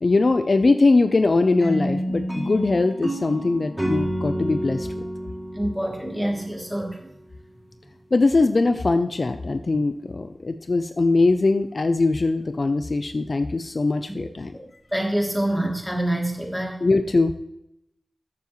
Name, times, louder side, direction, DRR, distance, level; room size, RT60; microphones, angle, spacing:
voice 1, 0.0-5.1 8.1-14.5 16.8-17.3, left 3 dB, 60° left, 9 dB, 0.5 m, -21 dB
sound 1, 1.6-6.7, equal, 20° right, 3.9 m, -29 dB
voice 2, 5.5-7.0 14.9-16.8, right 1 dB, ahead, -1 dB, 2.9 m, -26 dB
13.5 x 7.1 x 3.1 m, 0.84 s
wide cardioid pair, 55°, 0 cm